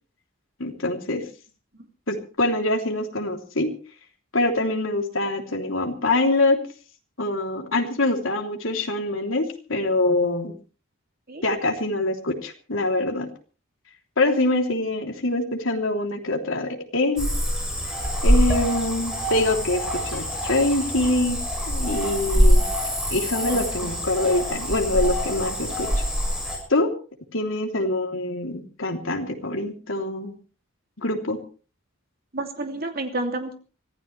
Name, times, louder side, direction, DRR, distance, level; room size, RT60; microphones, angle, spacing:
voice 1, 0.6-1.2 2.1-3.7 4.3-6.6 7.2-10.5 11.4-13.3 14.2-17.3 18.2-21.4 21.7-22.7 23.1-25.9 26.7-26.9 27.3-30.3 31.0-31.4, left 2 dB, 70° left, 3 dB, 3.3 m, -24 dB
Cricket / Frog, 17.2-26.6, equal, 5° right, 7.4 m, -24 dB
voice 2, 23.5-23.9 32.3-33.5, right 2 dB, 45° right, 4 dB, 2.8 m, -30 dB
25.0 x 15.5 x 3.3 m, 0.38 s
head